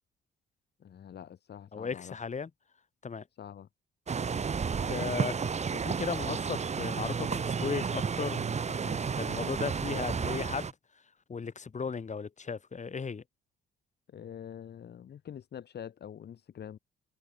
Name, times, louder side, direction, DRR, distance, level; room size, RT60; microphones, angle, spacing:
voice 1, 0.8-2.2 3.4-3.7 14.1-16.8, left 9 dB, 55° left, 2.4 m, -45 dB
voice 2, 1.7-2.5 3.0-3.2 4.8-5.4 5.7-10.7 11.3-13.2, left 5 dB, 35° left, 4.9 m, -36 dB
sound 1, 4.1-10.7, right 6 dB, 35° right, 1.3 m, -32 dB
cardioid pair, 90°, 20 cm